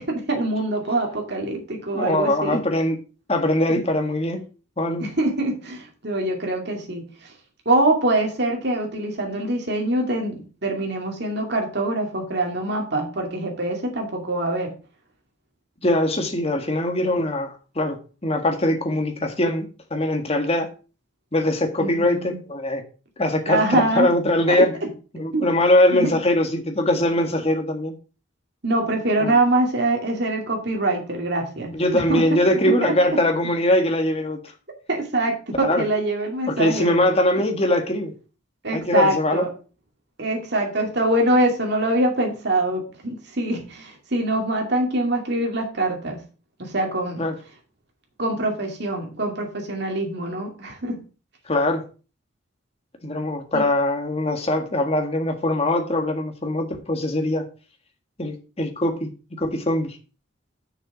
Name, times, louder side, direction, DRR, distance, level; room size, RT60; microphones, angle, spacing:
voice 1, 0.0-2.6 5.0-7.0 7.7-14.7 21.8-22.4 23.5-24.1 24.5-24.9 25.3-25.5 25.9-26.1 28.6-32.2 32.8-32.9 34.9-37.0 38.6-39.5 40.2-46.2 46.6-47.3 48.2-51.0 53.5-53.6, right 1 dB, 60° right, 1 dB, 2.4 m, -24 dB
voice 2, 1.9-3.0 3.3-4.4 4.8-5.1 15.8-20.7 21.3-22.8 23.2-24.7 25.1-28.0 29.2-29.4 31.7-34.4 35.6-35.8 36.5-38.1 38.7-39.4 47.2-47.4 51.5-51.9 53.0-57.4 58.2-59.1 59.4-60.0, left 1 dB, 30° left, 5 dB, 1.7 m, -22 dB
6.6 x 6.5 x 6.0 m, 0.35 s
head